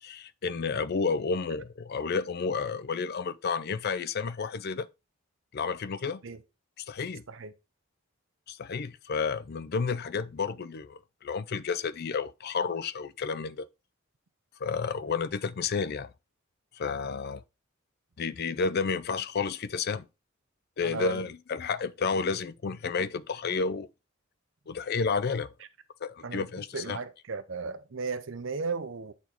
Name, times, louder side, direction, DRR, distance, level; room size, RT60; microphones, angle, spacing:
voice 1, 0.0-4.9 5.5-6.2 6.8-7.2 8.5-13.7 14.6-16.1 16.7-17.4 18.2-20.1 20.8-23.9 24.7-25.5 26.0-27.0, left 5 dB, 50° left, 0.4 m, -31 dB
voice 2, 20.8-21.2 26.2-26.5 26.7-29.1, right 4 dB, 65° right, 0.7 m, -35 dB
8.3 x 4.2 x 4.4 m
head